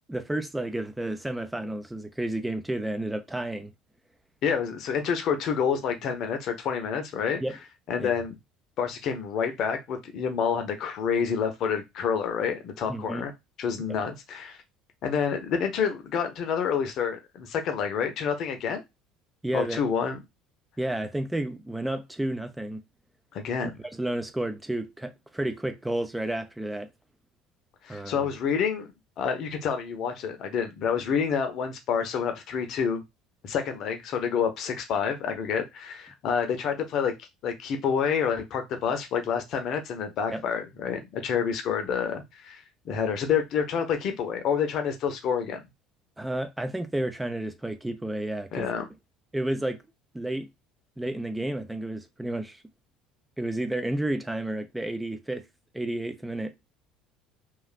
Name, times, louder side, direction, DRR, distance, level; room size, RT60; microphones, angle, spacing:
voice 1, 0.1-3.7 7.4-7.6 8.0-8.1 12.9-13.3 13.9-14.0 19.4-19.8 20.8-22.8 24.0-26.9 27.9-28.3 40.3-40.4 46.2-48.7 49.3-49.8 50.1-50.5 51.0-52.6 53.4-55.4 55.7-56.5, right 1 dB, 5° right, 0.3 m, -31 dB
voice 2, 4.4-7.4 7.9-8.4 8.8-13.3 13.6-14.6 15.0-18.8 19.5-20.2 23.3-23.8 27.8-28.9 29.2-33.0 33.4-45.6 48.5-48.9, left 7 dB, 50° left, 0.7 m, -28 dB
3.0 x 2.4 x 2.4 m
figure-of-eight pair, 60°, 0 cm